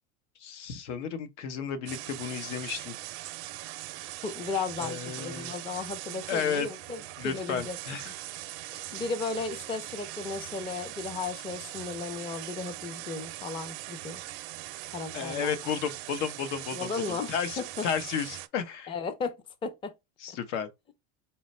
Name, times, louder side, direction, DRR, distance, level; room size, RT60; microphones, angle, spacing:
voice 1, 0.4-2.9 4.8-5.6 6.3-6.7 7.2-8.1 15.1-18.9 20.2-20.7, left 7 dB, 80° left, 0.9 m, -33 dB
sound 1, 1.9-18.5, right 16 dB, 75° right, 0.5 m, -41 dB
voice 2, 4.2-7.8 8.1-8.2 8.7-14.2 14.9-15.7 16.7-17.9 18.9-19.4 19.6-19.9 20.5-20.6, left 4 dB, 15° left, 0.4 m, -35 dB
4.3 x 2.2 x 4.1 m
supercardioid pair, 140°, 35 cm